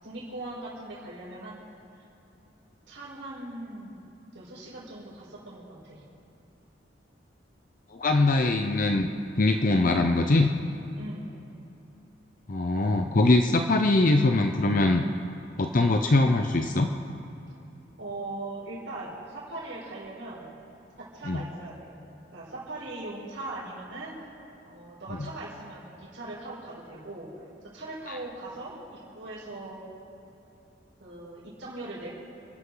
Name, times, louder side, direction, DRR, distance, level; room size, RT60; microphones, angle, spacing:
voice 1, 0.0-1.7 2.9-3.9 4.3-6.0 11.0-11.3 18.0-20.5 21.0-21.9 22.3-24.1 24.6-27.3 27.6-29.8 31.0-32.1, right 2 dB, 80° right, -7 dB, 4.7 m, -40 dB
voice 2, 7.9-9.1 9.4-10.5 12.5-15.0 15.6-16.9 21.3-21.4 28.1-28.2, left 2 dB, 45° left, 4 dB, 0.7 m, -22 dB
29.0 x 12.0 x 3.9 m, 2.9 s
head